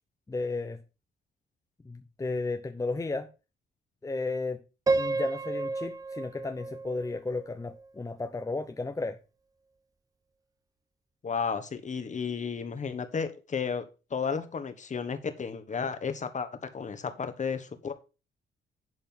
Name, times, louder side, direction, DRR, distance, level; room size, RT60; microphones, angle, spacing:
voice 1, 0.3-0.8 1.8-3.3 4.0-4.6 4.9-9.2, left 3 dB, 15° left, 0.8 m, -33 dB
Piano, 4.9-7.9, right 3 dB, 20° right, 0.3 m, -31 dB
voice 2, 11.2-13.8 14.1-17.9, left 6 dB, 40° left, 1.5 m, -33 dB
11.0 x 4.3 x 5.6 m
cardioid pair, 90°, 20 cm